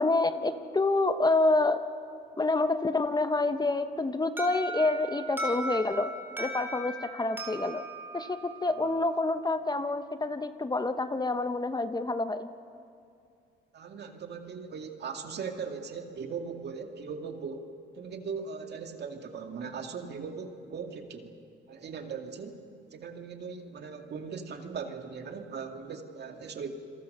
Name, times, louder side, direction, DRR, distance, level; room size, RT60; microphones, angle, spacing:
voice 1, 0.0-1.8 2.4-6.1 6.4-7.8 8.1-12.5, left 2 dB, 20° left, 10 dB, 1.0 m, -28 dB
Alarm, 4.4-9.2, right 2 dB, 10° right, 3.8 m, -38 dB
voice 2, 13.7-17.6 18.0-21.3 21.7-22.6 22.9-26.7, right 5 dB, 55° right, 5 dB, 2.2 m, -39 dB
28.0 x 22.5 x 6.7 m, 2.4 s
cardioid pair, 90°, 20 cm